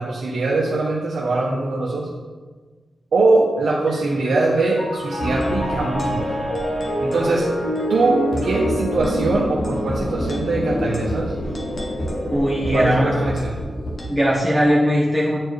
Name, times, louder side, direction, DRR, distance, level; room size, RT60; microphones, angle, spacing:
voice 1, 0.0-2.1 3.1-6.5 7.0-7.5 7.9-11.3 12.7-13.6, right 3 dB, 85° right, -4 dB, 0.8 m, -22 dB
Piano, 3.9-13.3, equal, 85° left, 1.5 m, -28 dB
sound 1, 5.2-14.1, left 1 dB, 55° left, 1.3 m, -28 dB
voice 2, 12.3-13.3 14.1-15.4, equal, 15° left, -6 dB, 1.3 m, -19 dB
9.4 x 4.4 x 3.2 m, 1.4 s
cardioid pair, 80°, 0 cm